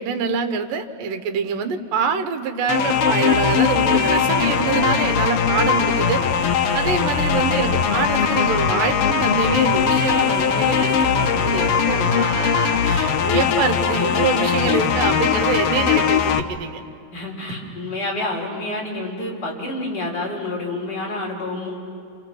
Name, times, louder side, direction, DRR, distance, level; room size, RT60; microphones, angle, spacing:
voice 1, 0.0-6.2 6.7-16.8, right 5 dB, 75° right, 7 dB, 2.7 m, -25 dB
sound 1, 2.7-16.4, left 7 dB, 75° left, 1.4 m, -20 dB
voice 2, 17.1-21.7, left 2 dB, 30° left, -2 dB, 4.4 m, -28 dB
28.0 x 27.5 x 6.2 m, 2.5 s
omnidirectional pair, 3.9 m